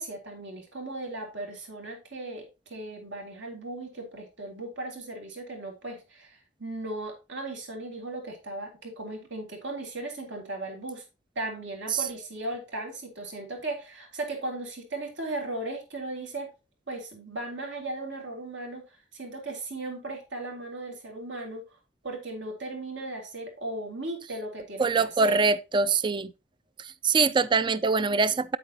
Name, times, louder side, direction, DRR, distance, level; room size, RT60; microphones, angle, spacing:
voice 1, 0.0-11.0 11.4-16.5 16.9-21.6 22.0-25.4, right 2 dB, 80° right, 3.6 m, -37 dB
voice 2, 24.8-26.3 26.8-28.6, right 4 dB, 25° right, 0.4 m, -24 dB
8.9 x 8.5 x 3.0 m
head